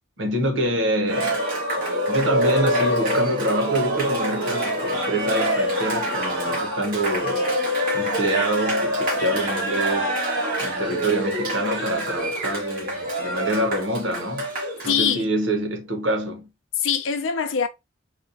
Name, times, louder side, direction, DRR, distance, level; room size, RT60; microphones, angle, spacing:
voice 1, 0.2-1.4 2.1-7.4 7.9-10.2 10.6-14.5 14.8-16.5, right 1 dB, 90° right, 1.0 m, -26 dB
Cheering, 1.1-14.9, equal, 50° right, 1.6 m, -25 dB
voice 2, 14.9-15.3 16.8-17.7, left 7 dB, 85° left, 0.5 m, -23 dB
4.1 x 2.3 x 2.6 m
head